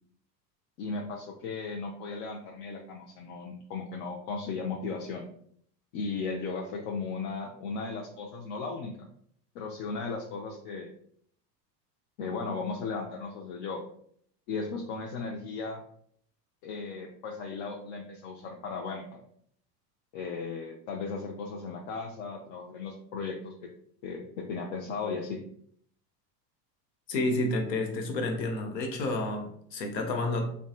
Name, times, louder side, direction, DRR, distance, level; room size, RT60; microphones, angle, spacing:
voice 1, 0.8-5.3 5.9-9.1 9.5-10.9 12.2-13.8 14.5-15.8 16.6-19.2 20.1-23.5 24.0-25.4, left 4 dB, 55° left, 0 dB, 0.5 m, -36 dB
voice 2, 27.1-30.5, left 2 dB, 80° left, 3 dB, 0.7 m, -30 dB
2.5 x 2.3 x 2.3 m, 0.65 s
hypercardioid pair, 90°, 50 cm